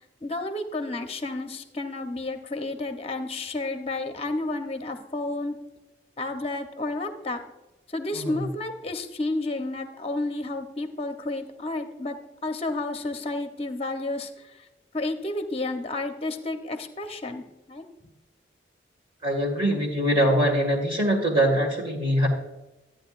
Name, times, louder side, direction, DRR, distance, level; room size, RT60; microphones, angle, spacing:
voice 1, 0.2-5.5 6.2-7.4 7.9-12.2 12.4-14.3 14.9-17.4 17.7-17.9, left 2 dB, 30° left, 6 dB, 0.8 m, -31 dB
voice 2, 8.1-8.4 19.2-22.3, equal, 30° right, -1 dB, 1.7 m, -23 dB
13.0 x 9.0 x 2.5 m, 1.0 s
head